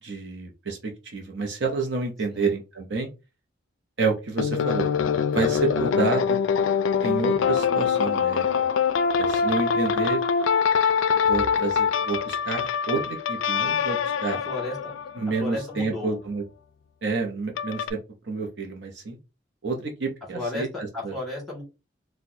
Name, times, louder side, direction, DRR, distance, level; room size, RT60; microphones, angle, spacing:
voice 1, 0.0-3.1 4.0-4.9 5.3-6.4 7.0-8.7 9.2-10.2 11.1-14.4 15.2-16.4 17.0-19.2 19.6-21.1, right 4 dB, 60° right, 2 dB, 0.7 m, -29 dB
sound 1, 4.4-15.8 17.6-17.9, left 6 dB, 80° left, 0.4 m, -24 dB
voice 2, 14.5-15.0 15.4-16.2 20.3-21.6, left 2 dB, ahead, -5 dB, 1.9 m, -33 dB
4.3 x 2.2 x 2.7 m, 0.28 s
head